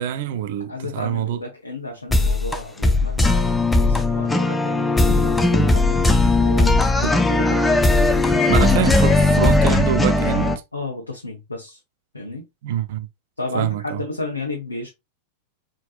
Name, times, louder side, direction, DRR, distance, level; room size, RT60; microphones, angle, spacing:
voice 1, 0.0-1.4 7.0-7.2 8.5-10.6 12.6-13.1 13.5-14.0, right 10 dB, 55° right, 0.5 m, -25 dB
voice 2, 0.7-6.0 6.4-7.9 8.4-8.7 10.7-11.8 12.1-12.4 13.4-14.9, left 2 dB, 80° left, 0.9 m, -32 dB
sound 1, 2.1-10.6, left 2 dB, 10° left, 0.6 m, -18 dB
4.0 x 3.8 x 2.4 m
figure-of-eight pair, 90°, 0 cm